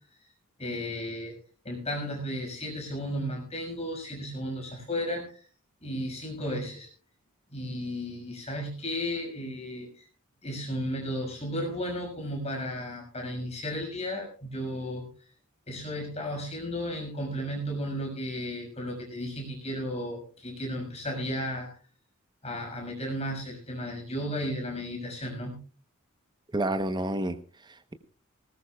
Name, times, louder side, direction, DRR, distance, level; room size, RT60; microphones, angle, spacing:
voice 1, 0.6-1.3 1.6-5.5 5.8-6.9 7.5-10.1 10.4-15.1 15.7-21.8 22.4-25.6, equal, 30° left, 1 dB, 6.0 m, -34 dB
voice 2, 26.5-27.9, right 1 dB, 20° right, 9 dB, 0.9 m, -30 dB
19.5 x 19.0 x 2.4 m, 0.38 s
head